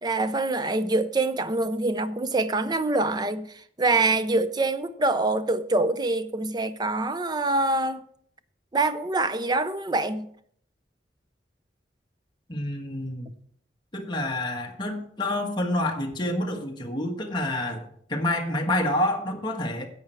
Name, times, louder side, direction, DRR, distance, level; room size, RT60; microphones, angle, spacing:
voice 1, 0.0-8.0 8.7-10.3, right 2 dB, 25° right, 0.5 m, -25 dB
voice 2, 12.5-13.3 13.9-19.9, left 1 dB, 25° left, 1.4 m, -28 dB
10.5 x 7.9 x 4.5 m
head